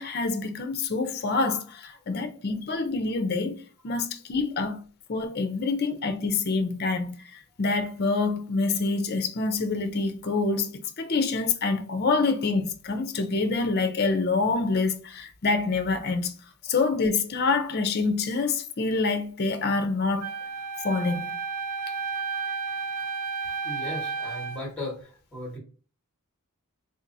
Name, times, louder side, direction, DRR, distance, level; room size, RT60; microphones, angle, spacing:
voice 1, 0.0-3.6 3.8-4.8 5.1-7.2 7.6-16.3 16.6-20.3 20.8-21.4, left 3 dB, 45° left, 0.5 m, -26 dB
voice 2, 2.1-2.5 16.6-16.7 23.6-25.6, left 1 dB, 5° left, 1.4 m, -37 dB
Wind instrument woodwind instrument, 20.2-24.7, right 5 dB, 90° right, 0.4 m, -32 dB
3.7 x 2.9 x 2.5 m
head